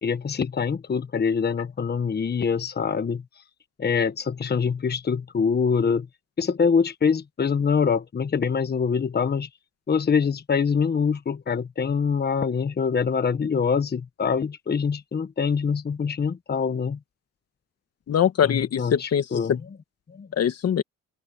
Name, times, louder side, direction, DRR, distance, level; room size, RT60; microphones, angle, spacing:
voice 1, 0.0-3.2 3.8-6.1 6.4-9.5 9.9-17.0 18.4-19.6 20.1-20.3, left 6 dB, 35° left, 1.3 m, -24 dB
voice 2, 18.1-19.6 20.4-20.8, left 9 dB, 55° left, 1.5 m, -23 dB
open air
cardioid pair, 90°, 30 cm